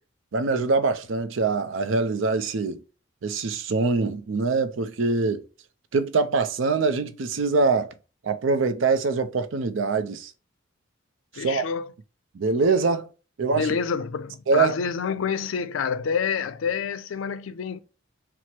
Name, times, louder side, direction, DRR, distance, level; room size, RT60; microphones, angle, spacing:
voice 1, 0.3-2.8 3.2-5.4 5.9-7.9 8.2-10.3 11.4-11.6 12.3-13.1 13.4-13.7 14.5-14.7, right 4 dB, 70° right, 0.5 m, -24 dB
voice 2, 11.3-11.9 13.5-17.8, left 6 dB, 75° left, 0.4 m, -28 dB
4.5 x 2.0 x 4.3 m
head